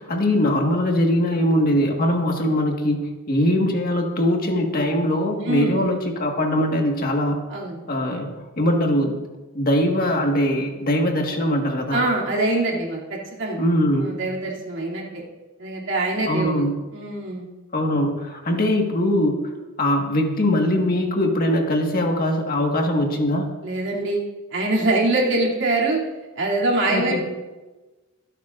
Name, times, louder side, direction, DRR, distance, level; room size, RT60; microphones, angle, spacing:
voice 1, 0.0-7.4 7.9-8.3 8.6-9.2 9.5-12.0 13.6-14.1 16.3-16.7 17.7-19.4 19.8-23.5 26.9-27.2, left 1 dB, 45° left, 1 dB, 1.7 m, -21 dB
voice 2, 5.4-5.8 7.5-7.8 11.9-13.6 14.0-15.2 15.6-16.7 16.9-17.5 23.6-24.2 24.5-26.0 26.4-27.2, right 2 dB, 65° right, -3 dB, 2.8 m, -24 dB
25.0 x 8.9 x 2.6 m, 1.2 s
head